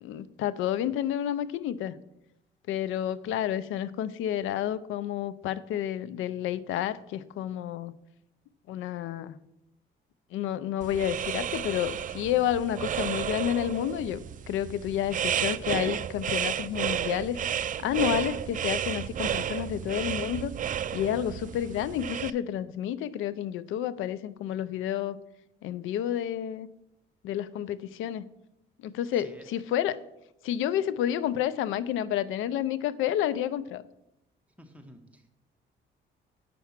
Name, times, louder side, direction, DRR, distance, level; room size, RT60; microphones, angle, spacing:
voice 1, 0.0-1.9 2.7-7.9 8.7-9.4 10.3-17.4 17.8-20.5 20.9-25.2 25.6-26.7 27.2-28.3 28.8-30.0 30.4-33.8, left 11 dB, 85° left, 17 dB, 0.5 m, -30 dB
sound 1, 10.8-22.3, right 9 dB, 40° right, 0.4 m, -32 dB
voice 2, 29.1-29.5 34.6-35.3, equal, 5° right, 4 dB, 1.4 m, -51 dB
8.3 x 5.9 x 5.9 m, 0.86 s
cardioid pair, 90°, 20 cm